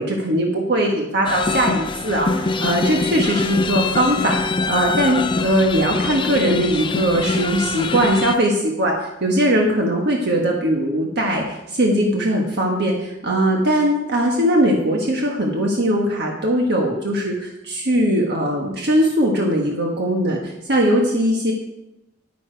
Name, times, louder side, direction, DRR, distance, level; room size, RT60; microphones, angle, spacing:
voice 1, 0.0-21.5, right 1 dB, 60° right, 0 dB, 1.4 m, -20 dB
sound 1, 1.3-8.4, left 3 dB, 25° left, 0.5 m, -24 dB
9.9 x 9.5 x 4.6 m, 0.90 s
head